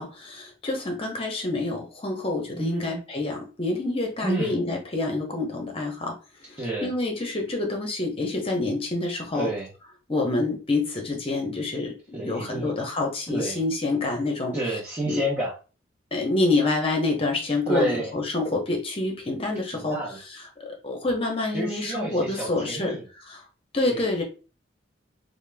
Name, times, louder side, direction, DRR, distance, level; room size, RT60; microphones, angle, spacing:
voice 1, 0.0-6.1 6.5-9.5 10.1-11.9 12.2-14.6 15.1-15.2 16.1-20.0 20.6-22.9 23.3-23.4 23.7-24.2, left 2 dB, 30° left, 1 dB, 0.9 m, -27 dB
voice 2, 2.5-3.0 4.2-4.6 6.6-6.9 9.3-9.7 12.1-12.7 13.3-13.6 14.5-15.5 17.7-18.1 19.7-20.2 21.5-23.0 23.9-24.2, right 1 dB, 10° right, -8 dB, 0.8 m, -30 dB
2.9 x 2.2 x 3.4 m, 0.34 s
head